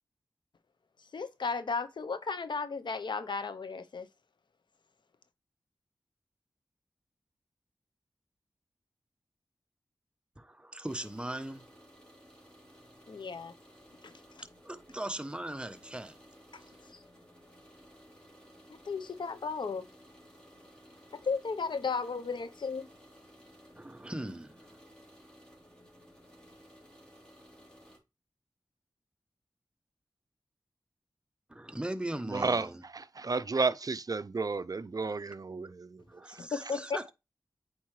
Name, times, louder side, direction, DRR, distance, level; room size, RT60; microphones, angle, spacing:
voice 1, 1.1-4.1 13.1-13.5 14.0-14.1 16.5-16.6 18.9-19.9 21.2-22.9 36.4-37.1, left 4 dB, 75° left, 0.7 m, -34 dB
voice 2, 10.4-11.6 14.6-16.2 23.7-24.8 31.5-32.8 36.1-37.1, right 1 dB, 10° right, 0.9 m, -39 dB
sound 1, 10.8-28.0, equal, 10° left, 3.3 m, -57 dB
voice 3, 32.3-32.7 32.9-36.0, right 4 dB, 50° right, 0.5 m, -32 dB
8.2 x 4.6 x 3.2 m
cardioid pair, 40°, 8 cm